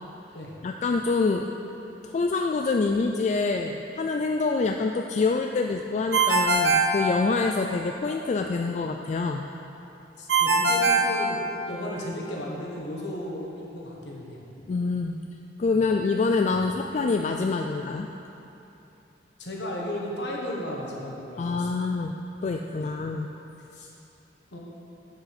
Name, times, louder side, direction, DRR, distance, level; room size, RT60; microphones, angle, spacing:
voice 1, 0.6-1.5 2.0-9.5 14.7-15.1 15.6-18.1 21.4-22.1 22.4-23.3, left 4 dB, 40° left, 3 dB, 0.3 m, -26 dB
Ringtone, 6.1-7.8 10.3-11.9, right 3 dB, 75° right, 0.9 m, -22 dB
voice 2, 10.2-11.4 11.7-14.4 15.7-15.8 19.4-21.9 22.7-22.9 23.7-23.9 24.5-24.6, left 1 dB, 70° left, -2 dB, 1.5 m, -35 dB
7.9 x 6.8 x 6.0 m, 2.9 s
head